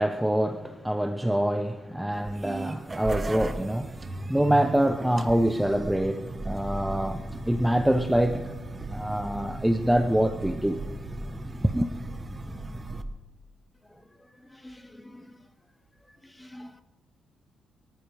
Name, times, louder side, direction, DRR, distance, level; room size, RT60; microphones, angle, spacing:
voice 1, 0.0-8.5 8.9-10.8 11.6-11.9, right 1 dB, 5° right, 0.8 m, -25 dB
sound 1, 2.1-13.0, right 2 dB, 25° right, 1.2 m, -36 dB
voice 2, 14.5-15.4 16.2-16.8, left 1 dB, 10° left, 1.5 m, -47 dB
24.5 x 14.0 x 3.4 m
cardioid pair, 90°, 0 cm